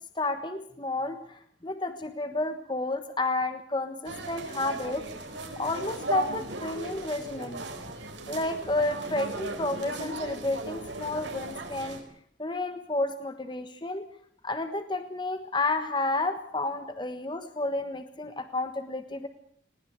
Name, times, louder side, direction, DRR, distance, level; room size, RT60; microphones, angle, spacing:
voice 1, 0.1-5.0 5.6-7.6 8.3-12.0 12.4-14.1 14.4-19.3, left 2 dB, 25° left, 8 dB, 1.3 m, -31 dB
sound 1, 4.0-12.0, right 2 dB, 80° right, 4.3 m, -37 dB
20.0 x 19.0 x 8.1 m, 0.62 s
head